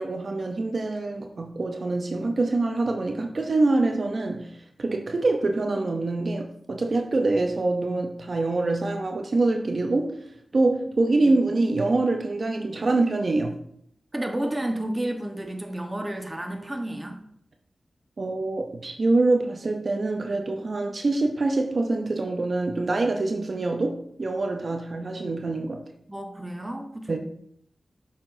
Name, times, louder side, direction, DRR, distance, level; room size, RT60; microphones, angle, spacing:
voice 1, 0.0-10.3 10.5-13.6 18.2-25.8 27.1-27.2, right 2 dB, 60° right, 0.6 m, -25 dB
voice 2, 14.1-17.2 26.1-27.2, right 1 dB, 20° right, 1.0 m, -31 dB
7.2 x 5.7 x 2.6 m
cardioid pair, 55°, 0 cm